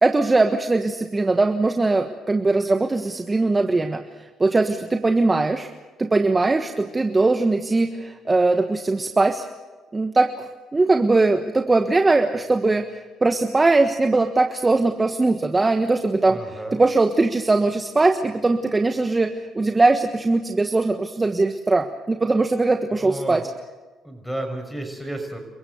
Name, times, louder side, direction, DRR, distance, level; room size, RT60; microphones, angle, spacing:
voice 1, 0.0-5.7 6.0-9.5 9.9-23.5, right 3 dB, 25° right, 6 dB, 1.4 m, -20 dB
voice 2, 16.2-16.8 23.0-23.4 24.0-25.4, right 1 dB, ahead, 5 dB, 6.7 m, -32 dB
29.0 x 15.5 x 8.0 m, 1.3 s
supercardioid pair, 70°, 0 cm